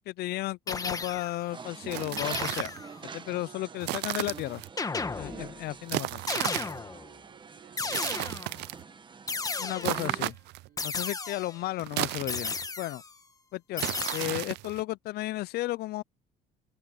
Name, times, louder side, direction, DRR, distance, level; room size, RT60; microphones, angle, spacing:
voice 1, 0.0-2.7 3.1-4.6 5.2-6.2 9.6-10.4 10.8-13.0 13.5-16.0, left 17 dB, 70° left, 0.4 m, -34 dB
sound 1, 0.7-1.5 2.2-3.0 4.8-5.6 6.3-7.1 7.8-8.6 9.3-10.1 10.8-11.6 12.3-13.1 13.8-14.3, left 4 dB, 20° left, 1.5 m, -34 dB
sound 2, 1.5-10.3, right 5 dB, 30° right, 1.3 m, -46 dB
sound 3, 1.8-2.8 3.8-4.7 5.9-6.8 7.8-8.8 9.8-10.7 11.8-12.7 13.8-14.8, right 19 dB, 80° right, 0.5 m, -34 dB
voice 2, 3.3-3.9 5.1-8.6 10.7-11.0, right 12 dB, 65° right, 3.8 m, -56 dB
cardioid pair, 110°, 17 cm